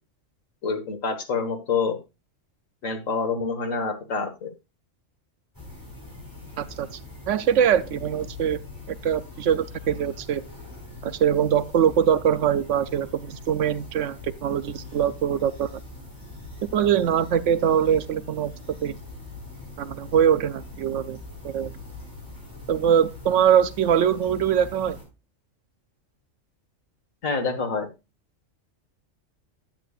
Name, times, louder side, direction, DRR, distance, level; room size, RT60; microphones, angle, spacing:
voice 1, 0.6-2.0 2.8-4.5 27.2-27.9, left 4 dB, 90° left, 1.9 m, -27 dB
sound 1, 5.5-25.0, left 2 dB, 15° left, 4.2 m, -42 dB
voice 2, 6.6-7.0 7.3-8.6 9.0-10.4 11.0-15.7 16.7-18.5 18.8-19.0 19.8-21.2 21.4-21.7 22.7-25.0, right 9 dB, 75° right, 1.0 m, -22 dB
10.0 x 8.3 x 2.4 m
omnidirectional pair, 1.3 m